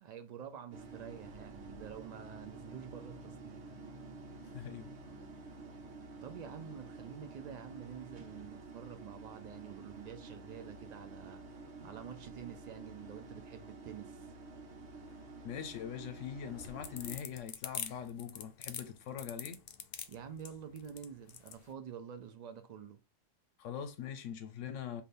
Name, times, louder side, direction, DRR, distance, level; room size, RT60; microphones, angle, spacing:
voice 1, 0.0-3.7 6.2-11.4 11.8-14.3 20.1-23.0, right 8 dB, 85° right, 0.3 m, -48 dB
sound 1, 0.7-17.2, right 3 dB, 65° right, 1.0 m, -50 dB
voice 2, 4.5-4.9 15.4-19.6 23.6-25.0, left 8 dB, 80° left, 0.9 m, -42 dB
sound 2, 16.5-21.6, left 8 dB, 60° left, 0.6 m, -43 dB
3.3 x 2.7 x 4.0 m
omnidirectional pair, 1.3 m